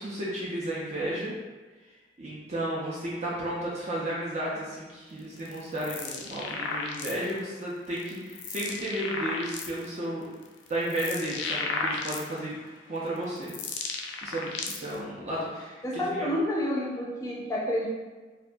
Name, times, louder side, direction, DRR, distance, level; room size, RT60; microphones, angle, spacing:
voice 1, 0.0-1.4 2.2-10.2 10.7-12.6 12.9-13.5 14.2-16.3, right 1 dB, 40° right, -6 dB, 0.4 m, -33 dB
sound 1, 5.4-7.4 8.0-9.9 10.4-12.6 13.2-15.0, left 4 dB, 75° left, 0.3 m, -34 dB
voice 2, 15.8-17.9, left 1 dB, 15° left, -5 dB, 0.5 m, -29 dB
2.7 x 2.5 x 2.2 m, 1.3 s
head